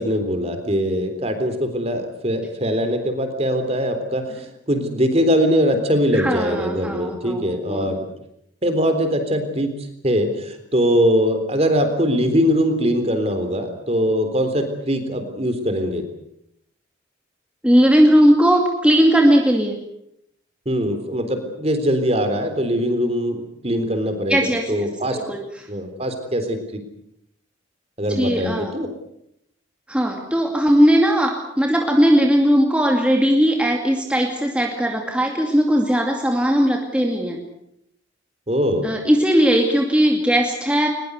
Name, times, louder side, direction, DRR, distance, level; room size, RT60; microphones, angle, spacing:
voice 1, 0.0-4.2 4.7-8.0 8.6-9.7 10.0-16.0 20.7-25.2 25.7-26.8 28.0-28.9 38.5-38.9, equal, 30° right, 8 dB, 3.7 m, -21 dB
voice 2, 6.1-7.9 17.6-19.8 24.3-24.9 25.1-25.7 28.2-28.7 29.9-37.4 38.8-40.9, equal, 5° right, 1 dB, 2.4 m, -18 dB
22.0 x 21.0 x 8.2 m, 0.77 s
head